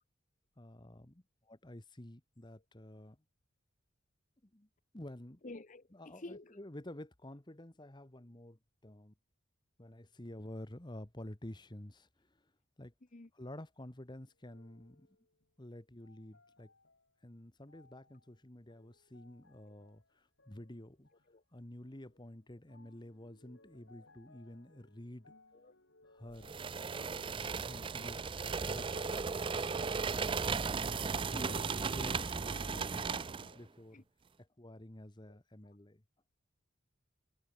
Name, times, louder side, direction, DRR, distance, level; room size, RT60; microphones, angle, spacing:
voice 1, 0.6-3.2 4.5-4.7 4.9-5.4 5.9-9.1 9.8-12.4 12.8-12.9 13.3-15.1 15.6-16.7 17.2-21.1 21.5-25.3 26.1-26.5 27.3-28.9 29.4-30.5 31.2-33.3 33.5-34.0 34.4-36.0, left 1 dB, 20° left, 1.3 m, -50 dB
voice 2, 5.4-6.6 13.1-13.3 19.7-19.8 21.3-21.4 24.0-24.1 25.5-25.7 31.3-31.7 32.5-32.6 33.0-33.6 33.9-34.0 35.3-35.4 35.6-35.8, left 2 dB, 40° left, 0.9 m, -52 dB
sound 1, 14.4-15.4 16.0-17.1 17.7-18.3 18.7-20.0 20.4-21.2 21.8-22.3 22.7-33.5, left 2 dB, 65° left, 5.3 m, -60 dB
sound 2, 26.4-33.5, right 5 dB, 25° right, 0.4 m, -36 dB
head